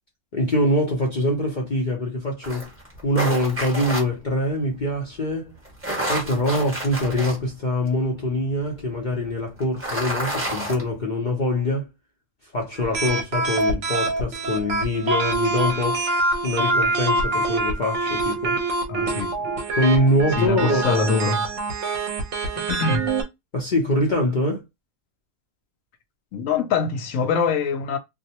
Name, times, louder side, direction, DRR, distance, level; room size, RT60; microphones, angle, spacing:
voice 1, 0.3-2.7 3.0-5.5 6.1-11.9 12.5-16.0 16.4-18.6 19.7-21.1 23.5-24.6, left 1 dB, 50° left, 0.5 m, -24 dB
sound 1, 2.4-4.0 5.7-7.4 7.9-8.0 9.6-10.8, right 1 dB, 10° right, 0.7 m, -28 dB
sound 2, 12.8-23.2, right 2 dB, 60° right, 0.9 m, -25 dB
voice 2, 18.9-19.5 20.4-21.4 22.6-23.1 26.3-28.0, left 5 dB, 70° left, 0.9 m, -24 dB
2.6 x 2.0 x 2.8 m
omnidirectional pair, 1.5 m